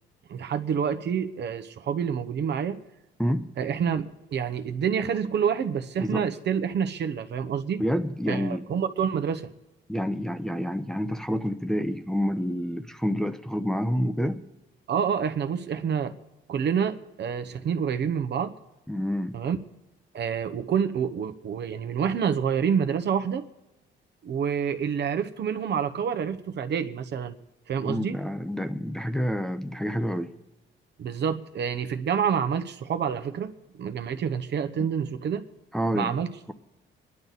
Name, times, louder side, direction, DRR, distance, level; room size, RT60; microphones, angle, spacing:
voice 1, 0.3-2.8 3.6-7.8 8.3-9.5 14.9-16.1 16.5-18.5 19.3-19.6 20.1-23.4 24.2-27.3 27.7-28.2 31.0-35.4 35.9-36.3, right 7 dB, 60° right, 1.0 m, -28 dB
voice 2, 7.8-8.6 9.9-14.4 18.9-19.4 27.8-30.3 35.7-36.2, equal, 5° left, 0.8 m, -28 dB
23.5 x 11.0 x 4.1 m
cardioid pair, 90°, 20 cm